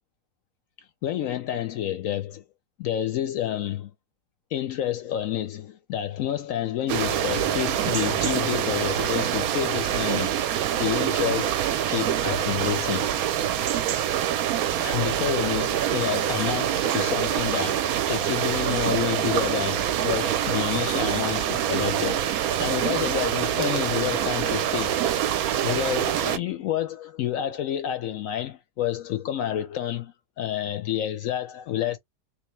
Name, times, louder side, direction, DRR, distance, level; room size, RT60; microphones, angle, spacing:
voice 1, 1.0-2.4 2.8-3.9 4.5-10.5 10.8-13.1 14.8-22.3 22.6-25.0 25.6-32.0, left 11 dB, 70° left, 0.8 m, -29 dB
sound 1, 6.9-26.4, right 10 dB, 70° right, 1.0 m, -25 dB
3.3 x 3.0 x 3.2 m
omnidirectional pair, 1.7 m